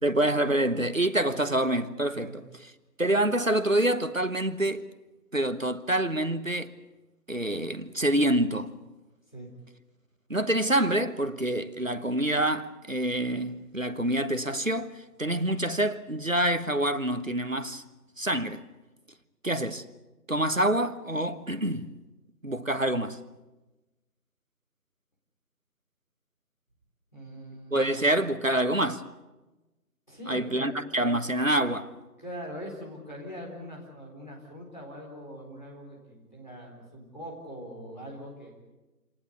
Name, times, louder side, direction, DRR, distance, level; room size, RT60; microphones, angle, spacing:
voice 1, 0.0-2.4 3.0-4.8 5.3-6.7 7.3-8.7 10.3-14.9 15.2-17.8 18.2-18.6 19.4-19.8 20.3-21.9 22.4-23.2 27.7-29.0 30.3-31.9, right 1 dB, 55° right, 1.3 m, -26 dB
voice 2, 27.1-27.9 30.1-30.7 32.2-38.6, equal, 30° left, 4.3 m, -42 dB
28.0 x 19.0 x 8.3 m
figure-of-eight pair, 180°, 49 cm